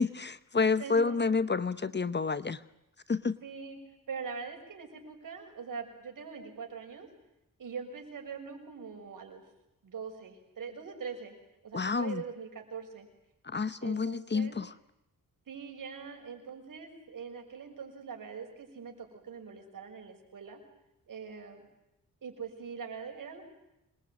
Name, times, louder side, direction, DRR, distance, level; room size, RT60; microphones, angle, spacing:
voice 1, 0.0-2.6 3.1-3.4 11.7-12.2 13.4-14.7, left 4 dB, 30° left, 15 dB, 0.9 m, -29 dB
voice 2, 0.8-1.2 3.4-3.8 4.1-7.1 7.6-9.4 9.8-11.3 11.6-13.1 13.8-14.5 15.5-20.6 21.1-21.7 22.2-23.4, right 6 dB, 70° right, 4 dB, 6.4 m, -42 dB
26.5 x 21.5 x 9.4 m, 0.90 s
wide cardioid pair, 115°, 34 cm